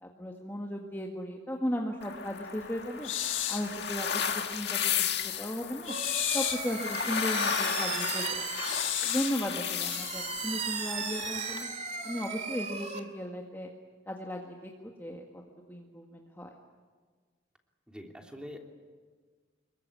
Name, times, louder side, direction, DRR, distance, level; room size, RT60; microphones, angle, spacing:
voice 1, 0.0-3.1 3.5-4.1 4.3-4.8 5.2-5.9 6.3-8.5 9.0-11.7 12.0-13.7 14.1-15.4 15.7-16.5, equal, 10° left, 0 dB, 1.9 m, -36 dB
sound 1, 2.0-11.6, left 8 dB, 60° left, 2.0 m, -34 dB
sound 2, 3.0-3.7 5.8-6.7 8.6-9.4, left 12 dB, 90° left, 1.6 m, -32 dB
sound 3, 5.9-13.0, right 5 dB, 35° right, 2.3 m, -37 dB
voice 2, 17.9-18.6, equal, 5° right, 1 dB, 3.1 m, -44 dB
26.5 x 23.0 x 8.6 m, 1.5 s
head